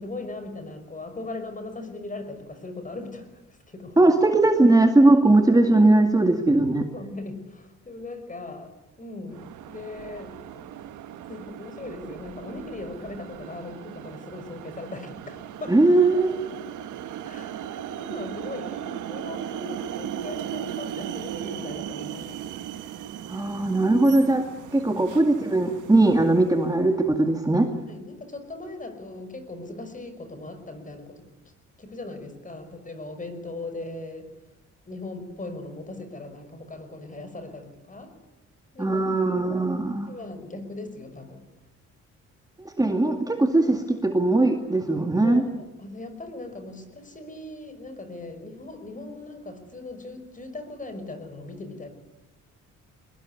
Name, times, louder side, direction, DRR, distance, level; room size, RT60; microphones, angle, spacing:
voice 1, 0.0-3.3 3.7-4.1 6.9-10.6 11.1-15.8 17.2-22.4 24.8-25.1 27.7-31.3 31.8-34.3 34.9-38.1 38.7-39.0 40.1-41.5 45.2-51.9, left 2 dB, 25° left, 9 dB, 5.7 m, -39 dB
voice 2, 4.0-6.9 15.7-16.3 23.3-24.5 24.7-27.7 38.8-40.1 42.6-45.5, right 2 dB, 10° right, 4 dB, 2.2 m, -20 dB
sound 1, 9.3-26.8, right 10 dB, 80° right, 1.5 m, -37 dB
22.5 x 21.0 x 9.7 m, 0.96 s
cardioid pair, 90°, 30 cm